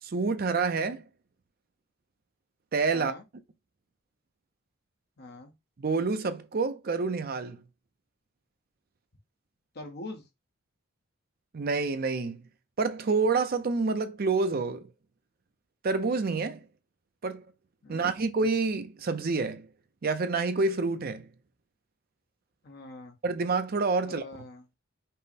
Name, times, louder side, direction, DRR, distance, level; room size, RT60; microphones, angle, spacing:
voice 1, 0.0-1.1 2.7-3.1 5.8-7.6 11.5-12.4 12.8-14.9 15.8-16.6 17.2-17.5 17.9-19.7 20.0-21.3 23.2-24.3, right 4 dB, 45° right, 0.5 m, -28 dB
voice 2, 2.9-3.2 5.2-5.5 9.7-10.2 17.8-18.0 22.6-23.2 24.0-24.6, left 2 dB, 50° left, 0.9 m, -43 dB
5.4 x 2.1 x 4.1 m
head